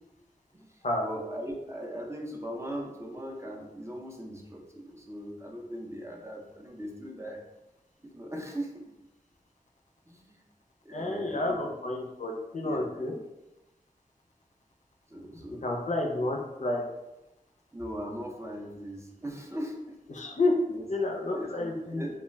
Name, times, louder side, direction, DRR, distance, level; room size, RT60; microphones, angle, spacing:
voice 1, 0.5-7.4 8.0-8.8 10.1-10.4 10.8-11.7 12.6-13.2 15.1-15.7 16.1-16.4 17.7-20.0 20.7-20.9 21.4-22.2, equal, 20° right, 0 dB, 0.5 m, -39 dB
voice 2, 10.9-13.1 15.6-16.8 20.1-20.5 20.9-22.0, left 2 dB, 50° left, 0 dB, 0.5 m, -30 dB
2.2 x 2.1 x 3.3 m, 0.97 s
wide cardioid pair, 65°, 15 cm